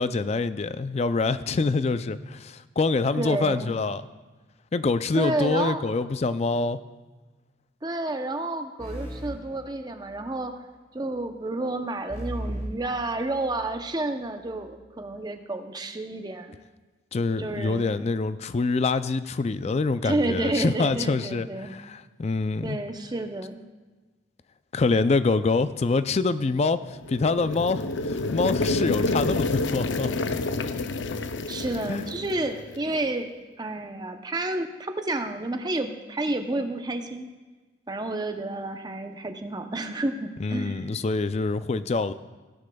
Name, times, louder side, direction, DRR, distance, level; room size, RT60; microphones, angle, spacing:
voice 1, 0.0-4.0 4.7-6.8 17.1-22.8 24.7-30.1 31.9-32.0 40.4-42.1, left 3 dB, 35° left, 13 dB, 0.4 m, -25 dB
voice 2, 3.1-3.7 5.1-5.8 7.8-10.5 10.9-16.6 17.4-17.9 20.0-21.8 22.6-23.6 31.5-33.3 33.6-37.3 37.9-40.8, right 2 dB, 20° right, 6 dB, 0.7 m, -30 dB
sound 1, 8.8-10.4 12.1-13.9, right 1 dB, 20° left, 2.8 m, -37 dB
sound 2, 26.9-33.0, left 2 dB, 80° left, 0.6 m, -28 dB
16.5 x 11.5 x 2.3 m, 1.3 s
head